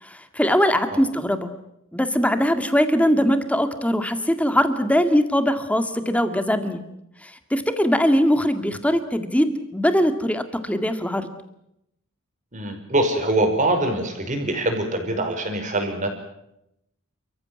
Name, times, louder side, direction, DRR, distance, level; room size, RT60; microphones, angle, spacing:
voice 1, 0.0-1.5 1.9-6.8 7.2-11.3, equal, 5° left, 8 dB, 1.9 m, -21 dB
voice 2, 12.5-16.1, right 1 dB, 35° right, 5 dB, 5.3 m, -23 dB
30.0 x 15.0 x 9.7 m, 0.82 s
head